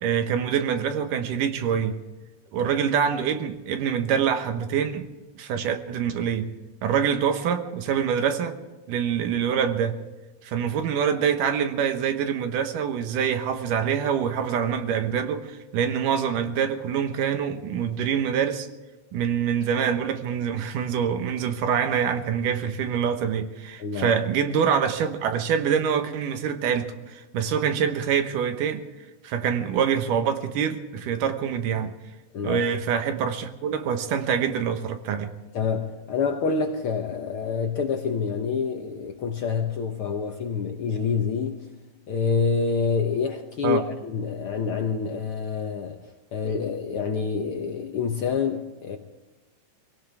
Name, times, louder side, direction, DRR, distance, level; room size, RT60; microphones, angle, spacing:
voice 1, 0.0-2.0 2.5-5.1 5.4-6.5 6.8-8.6 8.9-10.0 10.4-18.7 19.1-28.8 29.2-31.9 32.4-35.3 43.6-43.8, right 7 dB, 80° right, 2.7 m, -25 dB
voice 2, 23.8-24.2 32.3-32.6 35.5-41.6 42.1-46.0 46.3-49.0, left 5 dB, 65° left, 1.4 m, -27 dB
24.0 x 17.5 x 3.5 m
omnidirectional pair, 3.7 m